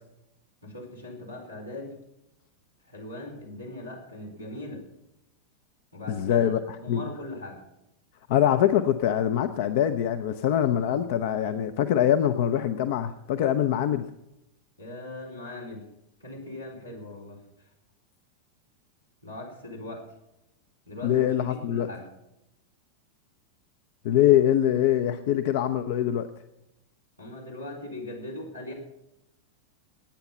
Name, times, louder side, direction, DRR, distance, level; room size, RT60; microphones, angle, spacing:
voice 1, 0.6-2.0 2.9-4.8 5.9-7.6 14.8-15.8 16.2-17.4 19.2-20.0 20.9-22.1 27.2-28.7, left 1 dB, 85° left, -2 dB, 4.3 m, -40 dB
voice 2, 6.1-6.6 6.9-7.0 8.3-14.0 21.0-21.9 24.0-26.3, left 11 dB, 50° left, 10 dB, 0.7 m, -23 dB
19.0 x 9.0 x 5.5 m, 0.87 s
figure-of-eight pair, 90°, 0 cm